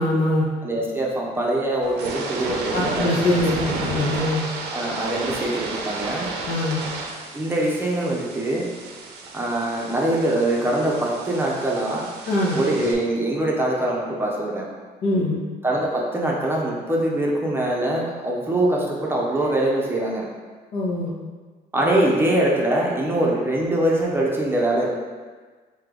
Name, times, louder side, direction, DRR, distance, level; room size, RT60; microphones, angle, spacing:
voice 1, 0.0-0.5 2.7-4.5 6.5-6.8 12.3-12.6 15.0-15.4 20.7-21.1, left 2 dB, 70° left, -5 dB, 1.1 m, -22 dB
voice 2, 0.6-3.2 4.7-6.3 7.3-8.7 9.3-12.1 12.5-14.7 15.6-20.2 21.7-24.9, right 1 dB, 15° right, -3 dB, 0.6 m, -23 dB
sound 1, 1.8-12.9, right 3 dB, 80° right, 0.6 m, -32 dB
3.2 x 2.8 x 3.7 m, 1.4 s
cardioid pair, 110°, 17 cm